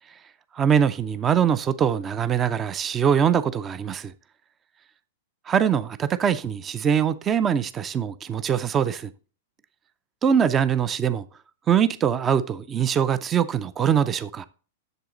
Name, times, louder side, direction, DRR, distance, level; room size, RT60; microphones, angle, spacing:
voice 1, 0.5-4.1 5.5-9.1 10.2-11.2 11.7-14.5, right 8 dB, 20° right, 0.4 m, -23 dB
8.0 x 7.0 x 3.8 m
hypercardioid pair, 135°, 0 cm